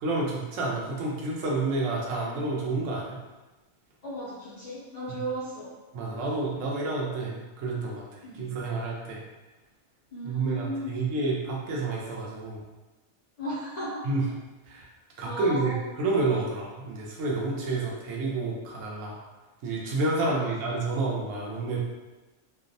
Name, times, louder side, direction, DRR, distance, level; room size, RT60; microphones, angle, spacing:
voice 1, 0.0-3.2 5.1-5.2 5.9-9.2 10.2-12.6 14.0-14.2 14.7-14.9 15.2-19.2 19.6-21.8, right 3 dB, 85° right, -3 dB, 1.0 m, -29 dB
voice 2, 4.0-5.7 8.2-8.5 10.1-11.3 13.4-14.1 15.3-15.9 20.2-21.0, equal, 80° left, -9 dB, 0.3 m, -36 dB
2.6 x 2.0 x 2.6 m, 1.1 s
omnidirectional pair, 1.3 m